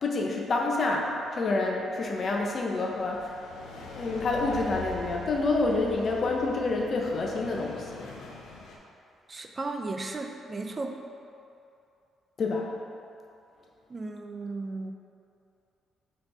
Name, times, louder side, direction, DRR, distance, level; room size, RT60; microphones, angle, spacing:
voice 1, 0.0-3.3 3.9-8.0 12.4-12.7, left 3 dB, 50° left, 0 dB, 0.9 m, -28 dB
sound 1, 1.2-8.8, left 4 dB, 85° left, 0.8 m, -43 dB
voice 2, 9.3-11.0 13.9-14.9, right 3 dB, 30° right, 5 dB, 0.4 m, -35 dB
4.3 x 4.2 x 5.4 m, 2.6 s
cardioid pair, 90°, 0 cm